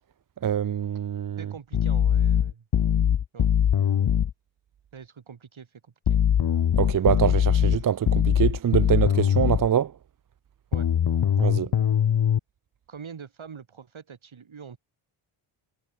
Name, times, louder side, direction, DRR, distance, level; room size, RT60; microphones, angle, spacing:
voice 1, 0.4-1.4 6.8-9.9 11.4-11.7, right 9 dB, 45° right, 0.5 m, -24 dB
voice 2, 1.4-2.7 3.3-3.5 4.9-6.2 10.7-10.9 12.9-14.8, right 6 dB, 70° right, 6.3 m, -44 dB
sound 1, 1.7-4.3 6.1-9.7 10.7-12.4, left 9 dB, 50° left, 0.8 m, -22 dB
wide cardioid pair, 145°, 49 cm